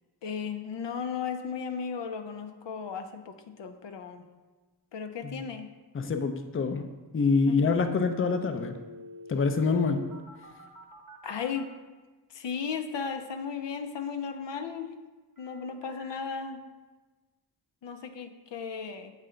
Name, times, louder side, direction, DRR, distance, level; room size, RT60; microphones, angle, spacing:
voice 1, 0.2-4.3 4.9-5.7 7.5-7.8 11.2-11.7 12.3-14.9 15.4-16.6 17.8-19.1, left 6 dB, 90° left, 7 dB, 0.5 m, -35 dB
voice 2, 5.9-6.9 7.1-8.8 9.3-10.0, left 4 dB, 30° left, 6 dB, 0.4 m, -26 dB
sound 1, 8.5-11.6 15.4-16.2, left 1 dB, 50° right, 0.8 m, -47 dB
7.6 x 3.3 x 3.7 m, 1.2 s
wide cardioid pair, 65°, 42 cm